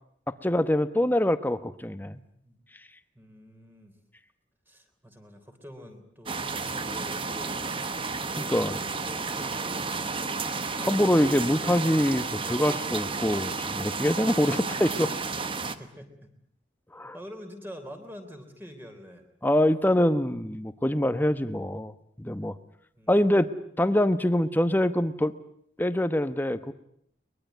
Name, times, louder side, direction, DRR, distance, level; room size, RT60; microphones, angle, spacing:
voice 1, 0.3-2.2 8.5-8.8 10.8-15.1 16.9-17.2 19.4-21.9 22.2-22.5 23.1-23.5 23.8-25.3 25.8-26.7, left 1 dB, 10° left, 12 dB, 1.0 m, -24 dB
voice 2, 3.1-4.0 4.7-7.9 8.4-10.4 15.6-16.3 17.1-19.3 23.0-23.2, equal, 10° right, 6 dB, 3.4 m, -46 dB
sound 1, 6.3-15.8, right 4 dB, 30° right, 1.1 m, -32 dB
23.0 x 22.0 x 9.3 m, 0.67 s
head